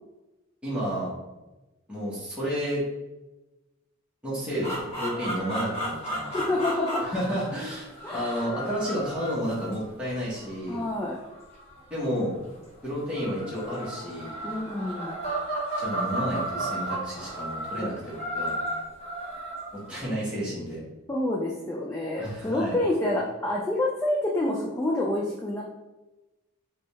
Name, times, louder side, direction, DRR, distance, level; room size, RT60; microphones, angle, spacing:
voice 1, 0.6-1.1 1.9-2.8 4.2-6.6 7.0-10.8 11.9-12.3 12.8-14.3 15.8-18.5 19.7-20.8 22.2-22.8, equal, 5° right, -8 dB, 0.9 m, -31 dB
sound 1, 4.6-12.4 13.0-20.0, right 1 dB, 30° left, 1.5 m, -34 dB
voice 2, 6.3-7.1 8.0-8.6 10.7-11.2 14.4-15.2 21.1-25.6, left 1 dB, 10° left, -3 dB, 0.3 m, -28 dB
3.4 x 2.2 x 4.0 m, 1.1 s
head